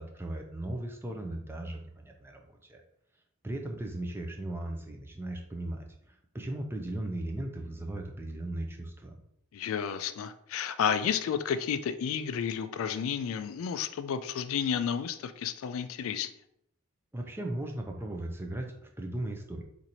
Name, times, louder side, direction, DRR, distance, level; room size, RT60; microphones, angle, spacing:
voice 1, 0.0-2.8 3.4-9.2 17.1-19.6, right 1 dB, 10° right, 2 dB, 0.4 m, -37 dB
voice 2, 9.5-16.3, left 7 dB, 70° left, 11 dB, 0.3 m, -31 dB
2.9 x 2.6 x 4.0 m, 0.72 s
head